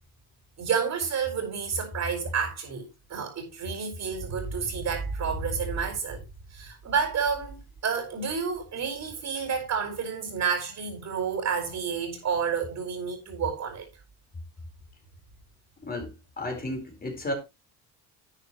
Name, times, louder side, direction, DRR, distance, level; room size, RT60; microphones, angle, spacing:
voice 1, 0.6-6.2 6.5-13.8, right 6 dB, 50° right, 4.6 m, -30 dB
voice 2, 15.8-17.3, left 1 dB, 25° left, 4.5 m, -33 dB
11.5 x 9.0 x 3.1 m
cardioid pair, 120°, 37 cm